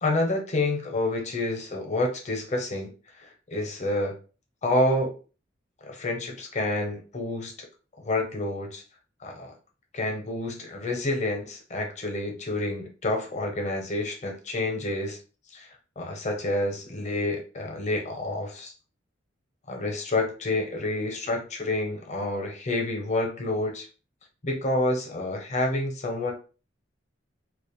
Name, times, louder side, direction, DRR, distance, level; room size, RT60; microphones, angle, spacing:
voice 1, 0.0-2.9 3.2-4.1 4.6-5.1 5.9-7.5 8.0-8.8 9.2-9.5 9.9-15.2 15.5-15.7 16.0-18.7 19.7-23.9 24.4-26.3, left 2 dB, 40° left, 2 dB, 0.6 m, -28 dB
2.4 x 2.1 x 2.9 m, 0.35 s
head